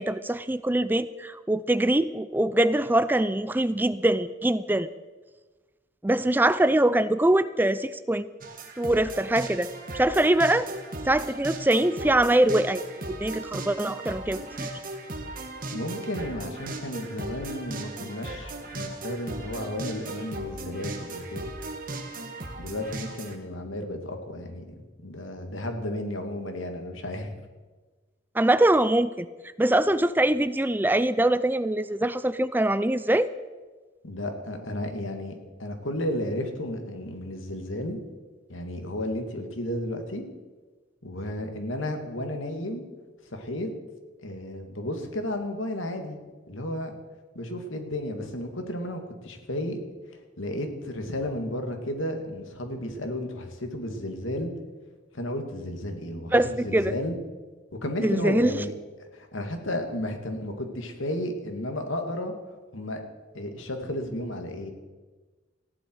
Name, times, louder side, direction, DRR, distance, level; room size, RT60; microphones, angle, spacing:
voice 1, 0.0-4.9 6.0-8.2 8.8-10.7 11.1-12.8 13.1-14.7 28.3-29.3 29.6-33.3 56.3-56.9 58.0-58.6, right 1 dB, 10° right, 14 dB, 0.4 m, -23 dB
sound 1, 8.4-23.4, right 2 dB, 45° right, 1.8 m, -37 dB
voice 2, 15.7-21.5 22.6-24.6 25.0-27.4 34.0-38.0 38.5-40.2 41.0-42.8 43.3-43.7 44.2-46.2 46.5-46.9 47.3-49.8 50.4-54.5 55.1-57.2 57.8-58.7 59.0-62.3 62.7-63.0 63.3-64.7, left 1 dB, 85° left, 5 dB, 2.4 m, -33 dB
19.0 x 15.0 x 4.8 m, 1.3 s
head